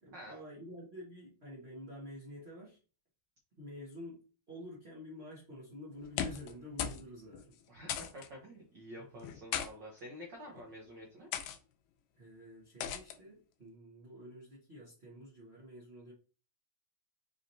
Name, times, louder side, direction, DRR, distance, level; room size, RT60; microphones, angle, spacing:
voice 1, 0.0-2.8 3.6-7.5 9.0-9.1 12.2-16.1, equal, 65° right, -6 dB, 0.6 m, -49 dB
sound 1, 6.0-6.5 6.8-7.1 7.3-7.4 7.9-8.3 9.2-9.7 10.5-10.7 11.3-11.6 12.8-13.2, left 9 dB, 80° left, 1.7 m, -37 dB
voice 2, 7.7-11.3, equal, 85° right, -2 dB, 1.0 m, -49 dB
4.8 x 2.9 x 2.7 m, 0.37 s
omnidirectional pair, 3.3 m